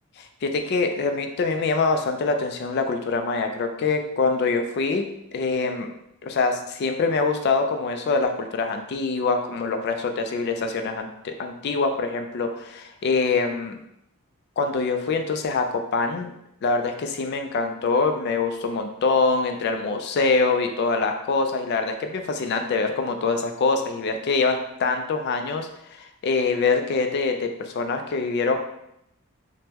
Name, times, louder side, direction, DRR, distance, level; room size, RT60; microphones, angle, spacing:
voice 1, 0.2-5.0 5.3-5.9 6.2-13.8 14.6-16.3 16.6-28.6, left 4 dB, 50° left, 5 dB, 0.3 m, -24 dB
3.4 x 2.1 x 2.9 m, 0.79 s
head